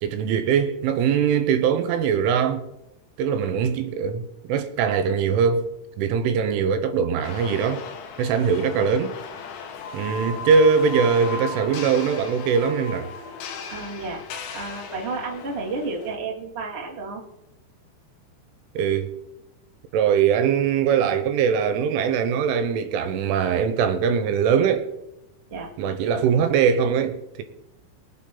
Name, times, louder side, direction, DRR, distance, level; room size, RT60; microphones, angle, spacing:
voice 1, 0.0-2.6 3.2-5.7 6.0-7.9 8.2-9.1 9.9-13.1 18.7-19.1 19.9-24.9 25.8-27.4, right 6 dB, 80° right, 3.3 m, -21 dB
sound 1, 7.2-16.2, left 4 dB, 80° left, 4.0 m, -36 dB
voice 2, 13.7-14.2 14.5-17.2 25.5-25.7, right 3 dB, 30° right, 1.2 m, -31 dB
23.5 x 8.4 x 3.9 m
omnidirectional pair, 5.7 m